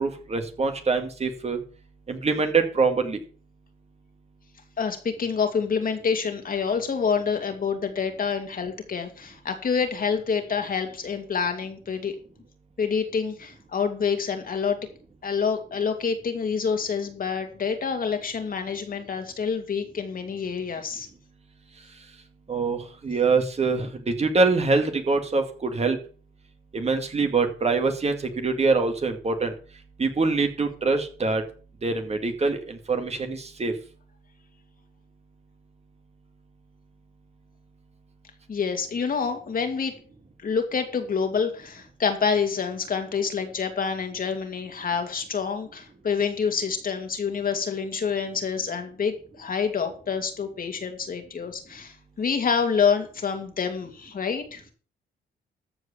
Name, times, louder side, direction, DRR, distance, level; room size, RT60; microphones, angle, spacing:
voice 1, 0.0-1.6 2.1-3.2 22.5-26.0 26.7-29.5 30.0-31.4 31.8-33.7, right 4 dB, 30° right, 6 dB, 2.1 m, -24 dB
voice 2, 4.8-12.2 12.8-14.8 15.2-21.1 38.5-39.9 40.4-54.6, left 6 dB, 45° left, 5 dB, 2.5 m, -27 dB
14.0 x 4.8 x 7.2 m, 0.40 s
cardioid pair, 90°, 20 cm